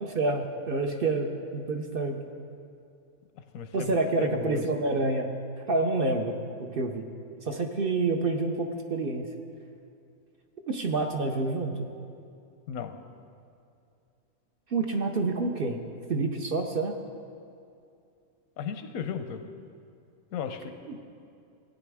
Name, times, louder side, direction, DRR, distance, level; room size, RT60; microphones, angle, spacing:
voice 1, 0.0-2.2 3.7-5.3 5.7-6.4 6.7-7.0 7.4-9.2 10.7-11.7 14.7-15.8 16.1-16.9 20.9-21.0, right 3 dB, 50° right, 4 dB, 0.8 m, -28 dB
voice 2, 3.5-4.6 12.7-12.9 18.6-19.4 20.3-20.7, left 7 dB, 90° left, 8 dB, 1.2 m, -35 dB
16.5 x 9.3 x 3.5 m, 2.5 s
omnidirectional pair, 1.4 m